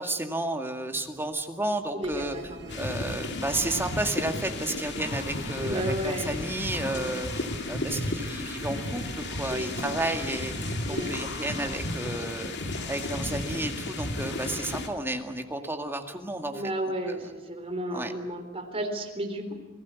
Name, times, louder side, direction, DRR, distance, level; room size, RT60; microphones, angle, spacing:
voice 1, 0.0-2.4 2.7-10.5 10.9-12.5 12.9-16.6 17.1-17.2 17.9-18.1, right 2 dB, 10° right, 4 dB, 2.1 m, -32 dB
voice 2, 1.9-3.2 5.6-6.4 6.9-7.2 9.5-9.8 10.9-11.1 16.5-19.5, right 1 dB, 30° right, 4 dB, 3.7 m, -33 dB
sound 1, 2.0-11.9, right 2 dB, 60° right, 2.1 m, -46 dB
sound 2, 2.7-14.9, left 2 dB, 55° left, 2.5 m, -33 dB
28.5 x 19.0 x 8.4 m, 1.3 s
head